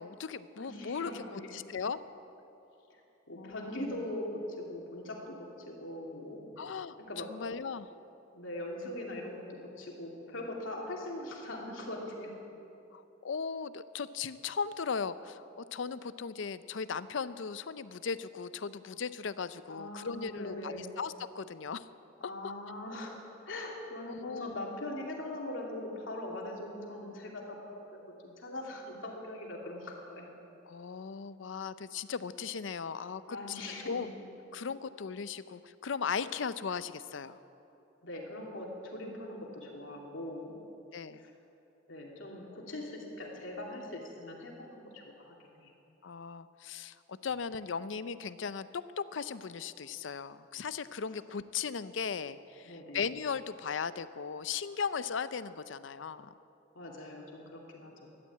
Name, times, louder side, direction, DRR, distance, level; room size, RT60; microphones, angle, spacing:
voice 1, 0.0-1.2 1.5-2.0 3.4-3.8 6.6-7.0 7.3-7.9 12.9-21.9 22.2-22.5 24.0-24.6 30.7-34.1 34.5-37.4 40.9-41.2 46.0-48.7 49.0-56.3, left 6 dB, 70° left, 14 dB, 0.5 m, -37 dB
voice 2, 0.5-1.5 2.9-3.0 3.3-6.5 7.0-7.3 8.3-12.3 19.7-20.9 22.2-23.1 23.4-30.3 33.3-34.1 38.0-40.6 41.2-41.3 41.9-45.7 52.6-53.1 56.7-58.1, left 1 dB, 90° left, -1 dB, 2.8 m, -41 dB
14.0 x 11.5 x 8.5 m, 2.9 s
head